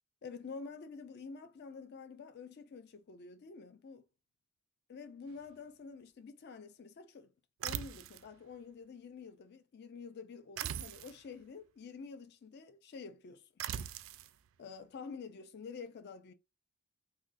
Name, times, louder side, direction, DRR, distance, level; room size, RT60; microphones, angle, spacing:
voice 1, 0.2-4.0 4.9-7.3 7.6-13.5 14.6-16.3, left 5 dB, 50° left, 0.4 m, -48 dB
sound 1, 7.6-8.3 10.6-11.2 13.6-14.3, right 10 dB, 65° right, 0.3 m, -40 dB
3.4 x 2.2 x 2.5 m
head